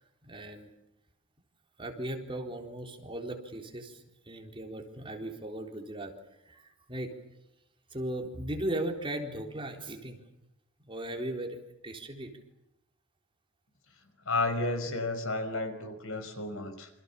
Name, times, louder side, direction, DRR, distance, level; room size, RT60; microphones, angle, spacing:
voice 1, 0.2-0.7 1.8-6.1 6.5-7.1 7.9-10.2 10.8-11.6 11.8-12.3, right 1 dB, 25° right, 3 dB, 3.9 m, -37 dB
voice 2, 14.3-16.9, left 2 dB, 65° left, 8 dB, 5.2 m, -32 dB
28.5 x 26.5 x 7.2 m, 0.84 s
head